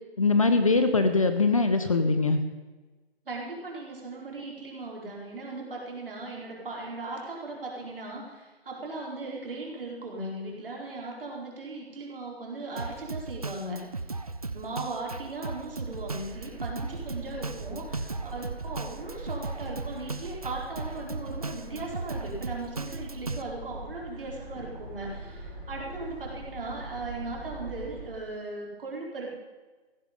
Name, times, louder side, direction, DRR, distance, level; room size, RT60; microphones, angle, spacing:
voice 1, 0.2-2.4, left 3 dB, 30° left, 8 dB, 0.8 m, -22 dB
voice 2, 3.3-14.2 14.5-29.4, right 2 dB, 60° right, -2 dB, 4.3 m, -38 dB
Drum kit, 12.8-23.4, right 3 dB, 35° right, 0.4 m, -37 dB
sound 1, 15.9-28.0, right 2 dB, 15° right, 5.4 m, -42 dB
15.5 x 10.5 x 5.2 m, 1.2 s
hypercardioid pair, 170°, 32 cm